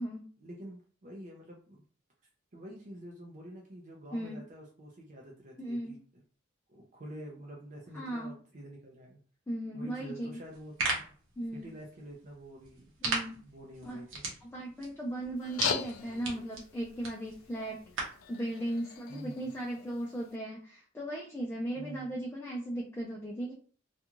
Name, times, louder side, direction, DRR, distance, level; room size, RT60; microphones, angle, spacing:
voice 1, 0.4-1.8 2.5-6.0 6.7-9.2 9.7-11.1 11.5-12.9 13.3-14.2 19.1-19.5 21.8-22.1, equal, 40° right, -2 dB, 0.5 m, -47 dB
voice 2, 4.1-4.4 5.6-5.9 7.9-8.3 9.5-10.4 11.4-11.7 13.0-13.4 13.8-14.0 14.4-17.8 18.3-23.5, right 1 dB, 10° left, -3 dB, 0.4 m, -37 dB
sound 1, 10.4-18.3, right 3 dB, 70° right, 0.8 m, -39 dB
sound 2, 15.4-20.4, left 7 dB, 85° left, 0.4 m, -40 dB
2.4 x 2.4 x 2.9 m, 0.43 s
head